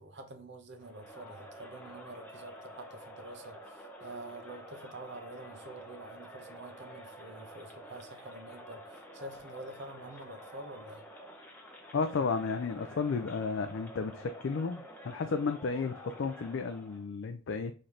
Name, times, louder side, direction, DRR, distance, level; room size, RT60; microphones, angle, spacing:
voice 1, 0.0-11.0 16.1-16.2, right 2 dB, 50° right, 0.8 m, -47 dB
Crowd, 0.8-17.1, equal, 10° left, 0.7 m, -49 dB
voice 2, 11.9-17.7, left 4 dB, 55° left, 0.4 m, -33 dB
3.8 x 3.2 x 4.1 m
head